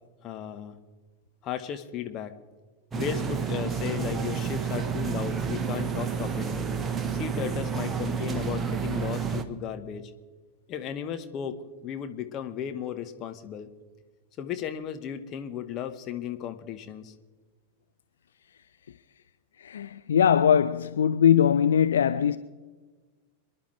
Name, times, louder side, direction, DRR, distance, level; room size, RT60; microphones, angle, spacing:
voice 1, 0.2-0.7 1.4-2.3 2.9-6.7 7.1-10.1 10.7-11.6 11.8-13.7 14.4-17.1, left 9 dB, 35° left, 1.3 m, -35 dB
sound 1, 2.9-9.4, right 6 dB, 20° right, 1.2 m, -30 dB
voice 2, 19.6-22.4, left 8 dB, 65° left, 0.4 m, -21 dB
27.5 x 11.0 x 3.4 m
figure-of-eight pair, 90°, 0 cm